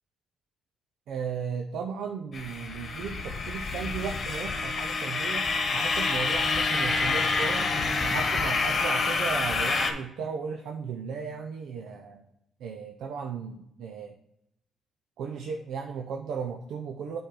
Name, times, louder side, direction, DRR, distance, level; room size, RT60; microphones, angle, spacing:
voice 1, 1.1-7.7 8.0-12.3 12.6-14.2 15.2-17.2, right 6 dB, 80° right, 3 dB, 0.6 m, -35 dB
sound 1, 2.3-9.9, left 3 dB, 45° left, 1.1 m, -27 dB
8.4 x 4.4 x 3.7 m, 0.79 s
cardioid pair, 90°, 0 cm